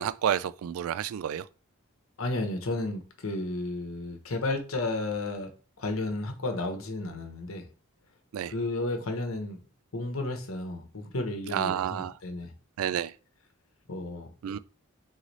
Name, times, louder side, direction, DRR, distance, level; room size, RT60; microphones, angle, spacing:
voice 1, 0.0-1.4 8.3-8.5 11.5-12.2 12.8-13.1 14.4-14.6, right 9 dB, 85° right, 0.3 m, -30 dB
voice 2, 2.2-5.5 5.8-7.7 8.5-9.6 9.9-12.5 13.9-14.3, left 2 dB, 75° left, 0.9 m, -32 dB
3.9 x 3.2 x 4.0 m
head